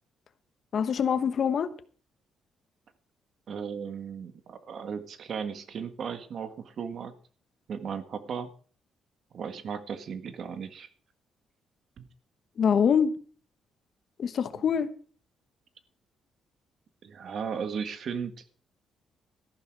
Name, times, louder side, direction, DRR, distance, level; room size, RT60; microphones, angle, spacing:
voice 1, 0.7-1.7 12.6-13.1 14.2-14.9, left 7 dB, 55° left, 1.1 m, -24 dB
voice 2, 3.5-7.1 7.7-8.5 9.3-10.9 12.0-12.1 17.0-18.3, right 6 dB, 60° right, 1.6 m, -36 dB
13.5 x 11.5 x 4.8 m
cardioid pair, 90°, 0 cm